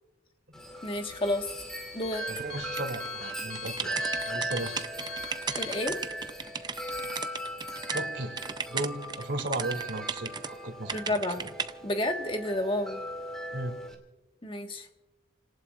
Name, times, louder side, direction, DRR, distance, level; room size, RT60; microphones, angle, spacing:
Wind chime, 0.5-13.9, right 1 dB, 5° left, 2.5 m, -38 dB
Alarm, 0.6-7.0, left 9 dB, 60° left, 1.1 m, -45 dB
voice 1, 0.8-1.5 1.9-2.2 5.6-6.0 10.9-11.4 11.8-13.0 14.4-14.9, left 1 dB, 30° left, 5 dB, 1.4 m, -30 dB
voice 2, 2.3-3.9 4.2-4.9 7.9-11.5 13.5-13.7, right 1 dB, 80° right, 4 dB, 2.6 m, -36 dB
sound 1, 2.8-8.0 8.4-10.5 10.9-11.7, right 6 dB, 25° right, 0.5 m, -36 dB
29.5 x 18.5 x 2.4 m, 1.1 s
head